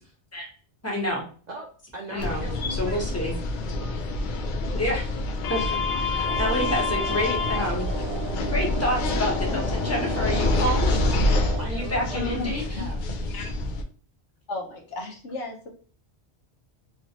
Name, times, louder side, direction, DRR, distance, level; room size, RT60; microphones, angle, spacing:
voice 1, 0.8-1.2 2.1-2.4 2.7-3.3 4.7-5.1 5.5-5.8 6.4-7.9 8.5-10.9 11.6-12.8, left 1 dB, 15° left, -1 dB, 0.8 m, -28 dB
voice 2, 1.5-3.2 3.8-4.4 5.4-6.0 10.5-13.0, right 2 dB, 50° right, 0 dB, 0.5 m, -41 dB
sound 1, 2.2-13.8, left 2 dB, 60° left, 0.5 m, -27 dB
sound 2, 6.2-11.7, right 6 dB, 65° right, 1.0 m, -34 dB
voice 3, 14.5-15.7, left 2 dB, 75° left, 1 dB, 1.1 m, -35 dB
3.0 x 3.0 x 2.7 m, 0.41 s
omnidirectional pair, 1.2 m